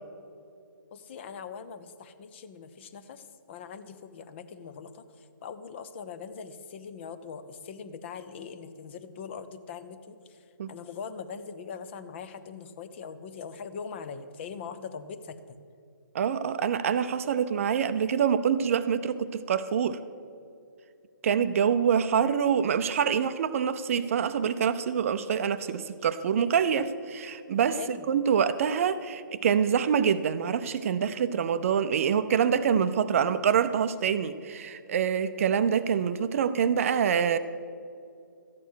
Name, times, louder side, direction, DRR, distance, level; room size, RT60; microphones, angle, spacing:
voice 1, 0.9-15.6 27.8-28.2, left 6 dB, 35° left, 11 dB, 0.7 m, -42 dB
voice 2, 16.1-20.0 21.2-27.8 28.1-37.4, right 7 dB, 40° right, 13 dB, 0.6 m, -26 dB
13.5 x 9.1 x 6.3 m, 2.4 s
hypercardioid pair, 150°, 11 cm